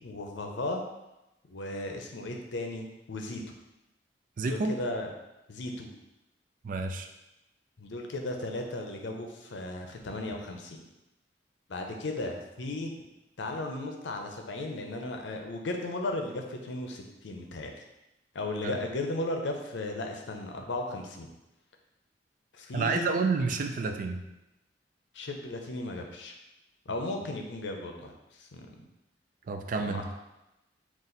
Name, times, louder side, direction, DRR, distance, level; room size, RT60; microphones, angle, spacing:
voice 1, 0.0-0.8 1.5-3.4 4.4-5.1 5.5-5.9 7.8-10.8 11.7-12.9 13.4-17.7 18.3-21.3 22.5-23.1 25.1-26.3 26.9-28.1 28.4-28.8 29.7-30.0, left 2 dB, 80° left, 3 dB, 0.6 m, -35 dB
voice 2, 4.4-4.7 6.6-7.1 18.6-18.8 22.7-24.2 29.5-30.0, right 4 dB, 45° right, 5 dB, 0.3 m, -29 dB
4.1 x 2.5 x 3.8 m, 0.95 s
head